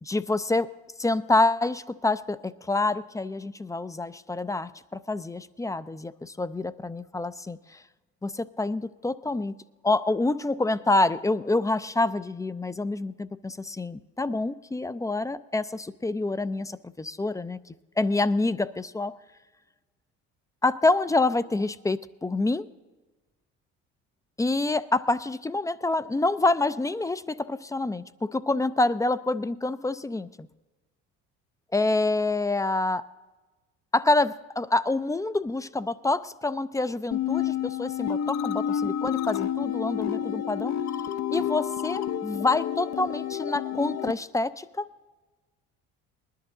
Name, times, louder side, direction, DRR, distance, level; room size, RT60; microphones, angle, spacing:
voice 1, 0.0-0.7 1.0-7.8 8.2-9.5 9.8-17.6 18.0-19.1 20.6-22.7 24.4-30.5 31.7-33.0 33.9-40.7 41.3-44.9, left 2 dB, 10° left, 15 dB, 0.4 m, -27 dB
sound 1, 37.1-44.1, left 10 dB, 55° left, 0.6 m, -29 dB
20.0 x 11.0 x 3.8 m, 1.2 s
supercardioid pair, 80°, 32 cm